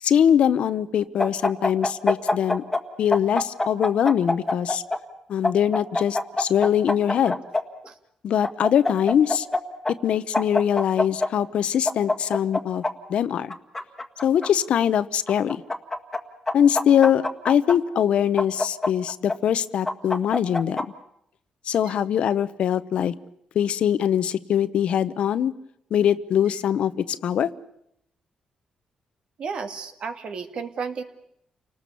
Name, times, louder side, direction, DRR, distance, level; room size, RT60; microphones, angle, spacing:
voice 1, 0.0-2.6 3.0-4.8 5.3-7.4 8.2-9.5 10.0-12.8 13.1-13.5 14.2-15.6 16.5-20.8 21.7-23.1 23.5-25.5 25.9-27.5, left 9 dB, 70° left, 14 dB, 0.9 m, -22 dB
sound 1, 1.2-2.8 3.1-5.0 5.4-7.6 8.4-9.6 9.8-9.9 10.3-11.3 11.8-12.9 13.5-14.5 15.3-16.2 16.5-17.7 18.4-19.3 19.9-20.8, left 2 dB, 15° left, 1.7 m, -24 dB
voice 2, 29.4-31.0, right 5 dB, 55° right, 8 dB, 2.1 m, -33 dB
29.5 x 19.0 x 7.0 m, 0.75 s
cardioid pair, 110°, 2 cm